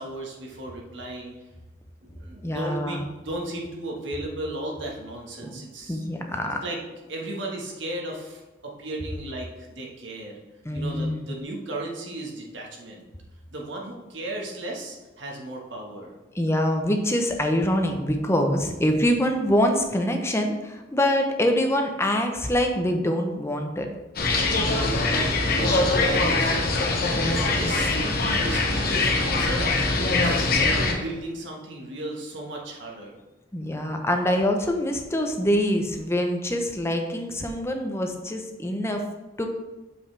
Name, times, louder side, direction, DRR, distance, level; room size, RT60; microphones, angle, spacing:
voice 1, 0.0-1.3 2.0-6.0 6.4-6.8 7.1-10.3 10.7-13.0 13.5-16.1 24.6-26.7 27.3-30.5 31.0-33.2, right 1 dB, 75° right, -1 dB, 1.4 m, -35 dB
voice 2, 2.4-3.0 5.4-5.6 5.9-6.6 10.6-11.3 16.3-23.9 27.2-27.6 33.5-39.0 39.4-39.5, equal, 15° left, 3 dB, 0.7 m, -25 dB
sound 1, 24.2-30.9, left 3 dB, 50° left, 1.0 m, -23 dB
7.1 x 5.5 x 3.3 m, 1.1 s
head